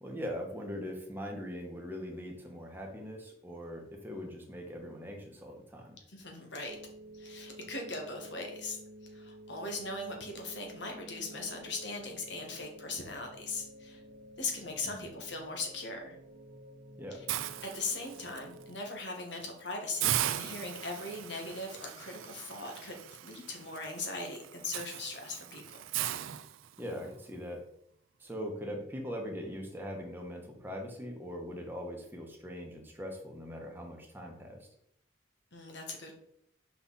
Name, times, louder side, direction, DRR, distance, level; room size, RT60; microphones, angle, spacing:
voice 1, 0.0-6.0 14.8-14.9 17.0-17.2 20.4-20.6 26.8-27.6 28.2-34.7, equal, 10° right, 1 dB, 1.1 m, -41 dB
voice 2, 6.1-6.8 7.1-8.8 9.1-14.0 14.4-16.2 17.1-17.2 17.6-23.0 23.2-25.8 35.5-36.1, left 3 dB, 65° left, 2 dB, 1.7 m, -39 dB
sound 1, 6.6-18.8, right 1 dB, 70° right, 0.8 m, -52 dB
Hiss, 17.3-18.4 18.9-19.1 19.4-19.5 20.0-27.1, right 12 dB, 85° right, 0.4 m, -38 dB
5.8 x 5.6 x 4.2 m, 0.71 s
head